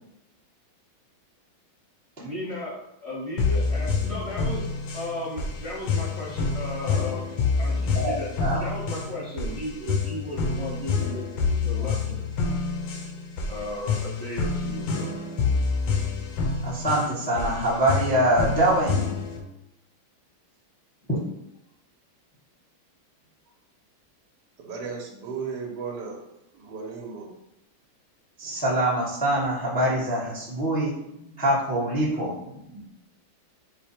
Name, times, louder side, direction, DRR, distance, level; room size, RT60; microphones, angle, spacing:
voice 1, 2.2-4.7 4.9-11.3 11.5-12.2 13.5-15.1, left 1 dB, 25° right, -6 dB, 0.8 m, -35 dB
sound 1, 3.4-19.4, left 4 dB, 90° left, 1.6 m, -27 dB
voice 2, 7.9-8.7 16.6-19.1 21.1-21.2 28.4-30.9 31.4-32.3, right 1 dB, 5° left, -8 dB, 0.7 m, -24 dB
voice 3, 24.6-26.2 26.5-27.3 28.4-28.6 30.4-30.5 31.1-31.4 32.0-32.9, right 5 dB, 65° right, 0 dB, 1.3 m, -38 dB
4.9 x 2.2 x 4.3 m, 0.83 s
omnidirectional pair, 2.3 m